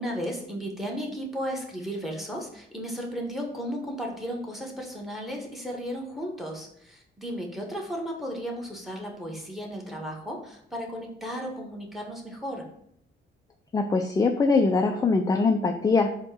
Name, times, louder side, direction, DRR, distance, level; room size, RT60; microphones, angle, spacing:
voice 1, 0.0-12.7, equal, ahead, 1 dB, 1.0 m, -34 dB
voice 2, 13.7-16.1, left 4 dB, 20° left, 5 dB, 0.3 m, -22 dB
4.2 x 2.2 x 4.6 m, 0.70 s
cardioid pair, 90°, 20 cm